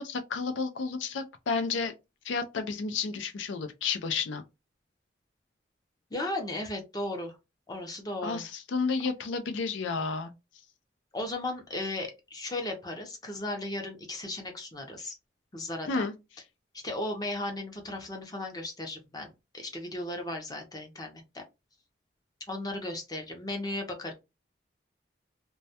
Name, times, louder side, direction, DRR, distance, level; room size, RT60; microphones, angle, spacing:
voice 1, 0.0-1.9 2.3-4.4 8.2-10.3 15.9-16.1, left 4 dB, 85° left, 0.4 m, -31 dB
voice 2, 6.1-7.4 7.7-8.5 11.1-15.2 15.5-16.1 16.7-21.4 22.5-24.1, left 1 dB, 20° left, 0.5 m, -36 dB
2.2 x 2.1 x 2.7 m
head